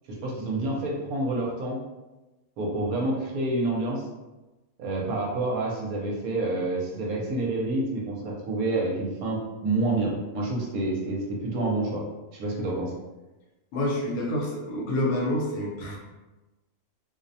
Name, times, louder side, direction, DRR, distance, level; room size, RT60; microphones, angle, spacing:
voice 1, 0.2-1.8 2.6-4.0 4.8-9.4 9.6-11.2 11.5-12.0 12.3-12.9, right 2 dB, 75° right, -2 dB, 1.0 m, -28 dB
voice 2, 13.7-16.0, left 1 dB, 75° left, -3 dB, 1.1 m, -28 dB
2.6 x 2.0 x 2.6 m, 1.1 s
omnidirectional pair, 1.6 m